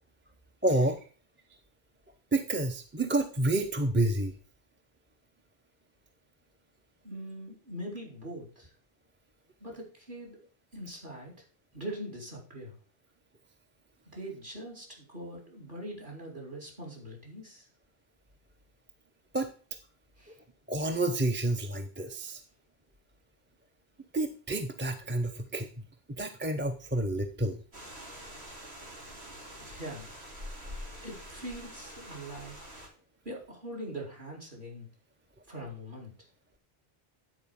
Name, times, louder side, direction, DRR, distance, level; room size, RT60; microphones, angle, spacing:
voice 1, 0.6-1.0 2.3-4.3 19.3-19.5 20.7-22.4 24.1-25.7 26.2-27.6, right 2 dB, 15° right, 5 dB, 0.6 m, -29 dB
voice 2, 7.0-8.7 9.6-10.4 10.7-11.3 11.7-12.8 14.1-17.7 20.2-20.4 29.6-30.1 31.0-32.8 33.2-34.9 35.5-36.1, right 1 dB, 50° right, 0 dB, 2.9 m, -42 dB
sound 1, 27.7-32.9, equal, 85° right, 2.9 m, -45 dB
9.8 x 4.3 x 6.9 m, 0.39 s
omnidirectional pair, 1.1 m